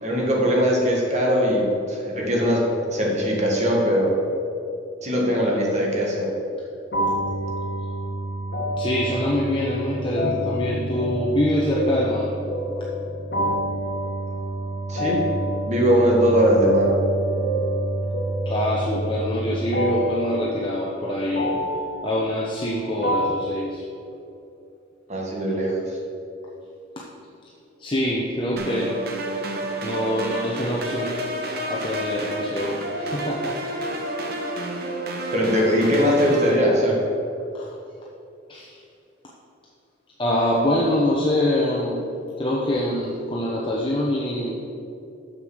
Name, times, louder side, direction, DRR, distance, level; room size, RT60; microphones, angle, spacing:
voice 1, 0.0-4.1 5.0-6.3 14.9-15.2 15.7-16.9 25.1-25.8 35.3-37.0, equal, 35° right, -2 dB, 1.8 m, -20 dB
sound 1, 6.9-23.6, right 1 dB, 55° left, 1.4 m, -27 dB
voice 2, 8.8-12.3 14.9-15.0 18.5-21.5 22.0-23.8 27.0-27.1 27.8-29.0 29.8-31.1 31.7-33.6 37.5-37.6 38.5-38.8 40.2-42.0 42.4-44.5, left 1 dB, 25° left, -4 dB, 0.8 m, -25 dB
sound 2, 28.6-36.6, right 1 dB, 55° right, 1.0 m, -29 dB
6.8 x 6.6 x 6.4 m, 2.6 s
head